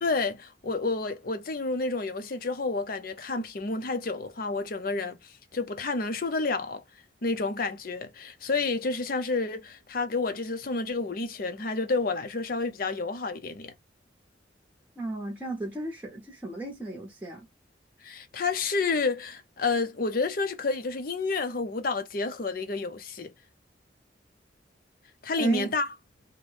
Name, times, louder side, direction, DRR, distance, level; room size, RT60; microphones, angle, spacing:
voice 1, 0.0-6.8 7.2-13.7 18.0-23.3 25.2-25.8, left 3 dB, 50° left, 0.6 m, -30 dB
voice 2, 15.0-17.5 25.4-25.7, right 2 dB, 10° right, 0.7 m, -35 dB
2.6 x 2.1 x 3.3 m
head